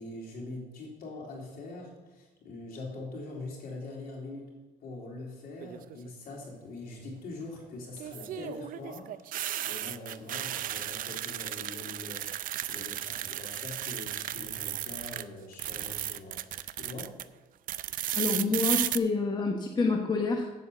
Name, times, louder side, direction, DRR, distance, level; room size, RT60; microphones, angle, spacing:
voice 1, 0.0-4.5 4.8-16.4 16.8-17.1, left 2 dB, 60° left, -1 dB, 3.5 m, -43 dB
sound 1, 5.6-6.1 8.0-15.2 15.5-17.2 17.7-19.0, right 12 dB, 55° right, 0.4 m, -34 dB
voice 2, 18.1-20.5, left 3 dB, 25° left, 2 dB, 1.1 m, -28 dB
8.2 x 7.5 x 7.0 m, 1.1 s
cardioid pair, 110°, 17 cm